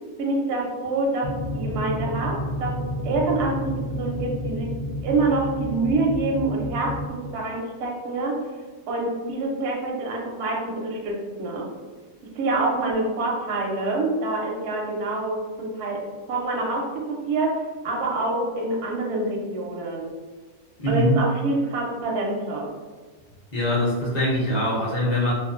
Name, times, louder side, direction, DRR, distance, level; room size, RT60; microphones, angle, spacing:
voice 1, 0.2-4.8 5.0-8.4 8.9-11.7 12.3-16.0 16.3-20.1 20.9-22.7, right 2 dB, 65° right, -1 dB, 0.7 m, -26 dB
sound 1, 1.2-7.1, left 1 dB, 65° left, 0.9 m, -30 dB
voice 2, 20.8-21.2 23.5-25.3, equal, 45° left, -6 dB, 0.6 m, -22 dB
2.5 x 2.5 x 2.4 m, 1.3 s
omnidirectional pair, 1.6 m